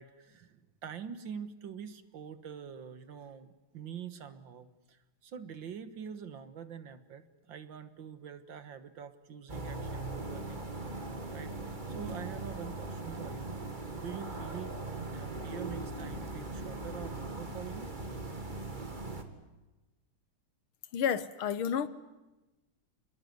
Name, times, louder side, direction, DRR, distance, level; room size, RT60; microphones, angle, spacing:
voice 1, 0.0-10.9 11.3-13.6 14.0-14.8 15.1-17.9, right 7 dB, 65° right, 2.1 m, -45 dB
sound 1, 9.5-19.2, right 2 dB, 25° right, 2.1 m, -40 dB
voice 2, 20.9-21.9, left 8 dB, 85° left, 2.0 m, -30 dB
28.0 x 21.5 x 9.5 m
omnidirectional pair, 2.3 m